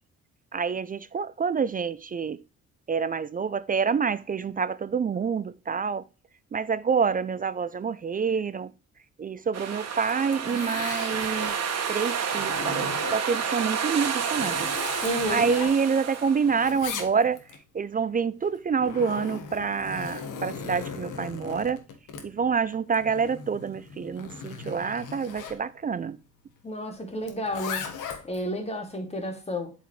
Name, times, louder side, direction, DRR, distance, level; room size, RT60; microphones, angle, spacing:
voice 1, 0.5-2.4 2.9-6.0 6.5-8.7 9.2-11.6 11.9-14.7 15.3-17.4 17.7-21.8 22.2-26.2, right 6 dB, 30° right, 0.4 m, -27 dB
sound 1, 9.5-16.8, right 6 dB, 55° right, 1.5 m, -30 dB
Zipper (clothing), 10.0-11.6 12.1-13.4 13.9-16.2 16.4-17.6 18.4-25.6 27.2-28.4, left 6 dB, 85° left, 1.5 m, -38 dB
voice 2, 15.0-15.5 26.6-27.9 28.2-29.7, equal, 20° left, 2.4 m, -31 dB
7.8 x 4.8 x 3.1 m
cardioid pair, 90°, 30 cm